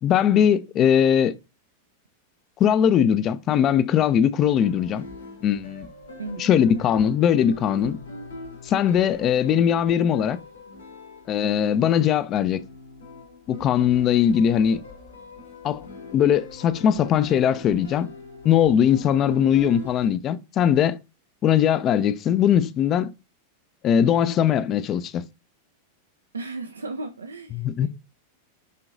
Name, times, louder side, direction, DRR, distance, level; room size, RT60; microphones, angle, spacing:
voice 1, 0.0-1.3 2.6-5.0 5.4-5.9 6.4-8.0 8.6-10.4 11.3-12.6 13.5-14.8 15.6-15.8 16.1-18.1 18.4-21.0 21.4-23.1 23.8-25.2 27.5-27.9, left 9 dB, 30° left, 0.5 m, -20 dB
sound 1, 4.5-20.1, left 2 dB, 70° left, 2.1 m, -42 dB
voice 2, 6.2-6.5 26.3-27.9, right 3 dB, 75° right, 0.5 m, -35 dB
11.0 x 3.8 x 2.5 m
figure-of-eight pair, 90°, 0 cm